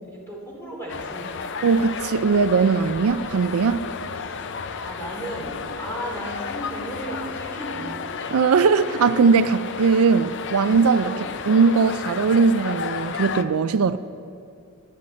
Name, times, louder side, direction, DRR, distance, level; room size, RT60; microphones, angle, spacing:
voice 1, 0.0-1.6 4.8-8.0 11.0-11.3, right 1 dB, 10° left, -4 dB, 3.3 m, -35 dB
sound 1, 0.9-13.4, left 5 dB, 55° left, 0.6 m, -33 dB
voice 2, 1.6-3.9 8.3-11.1 11.5-14.0, right 5 dB, 75° right, 13 dB, 0.4 m, -19 dB
22.5 x 10.0 x 4.3 m, 2.4 s
head